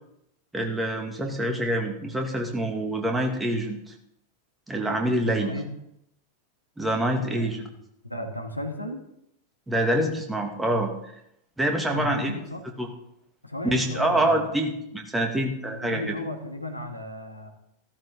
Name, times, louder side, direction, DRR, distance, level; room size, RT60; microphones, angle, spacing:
voice 1, 0.5-3.8 4.7-5.5 6.8-7.7 9.7-10.9 11.6-12.3 12.8-12.9 13.6-16.2, right 1 dB, 10° right, 2 dB, 2.3 m, -26 dB
voice 2, 5.3-5.7 7.2-7.5 8.1-9.0 11.9-12.6 13.4-14.5 15.7-17.5, left 1 dB, 85° left, 4 dB, 1.8 m, -34 dB
15.5 x 13.5 x 3.9 m, 0.78 s
figure-of-eight pair, 90°, 0 cm